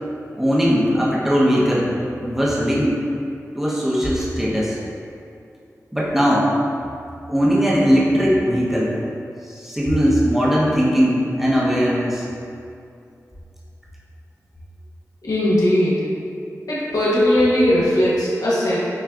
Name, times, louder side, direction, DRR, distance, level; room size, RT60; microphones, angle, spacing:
voice 1, 0.4-1.9 2.2-3.0 3.5-4.8 5.9-6.5 7.3-8.9 9.4-12.2, equal, 5° right, -7 dB, 0.7 m, -19 dB
voice 2, 15.2-16.1 16.7-18.8, left 1 dB, 70° left, -8 dB, 0.9 m, -18 dB
5.8 x 2.6 x 2.3 m, 2.5 s
wide cardioid pair, 95°, 6 cm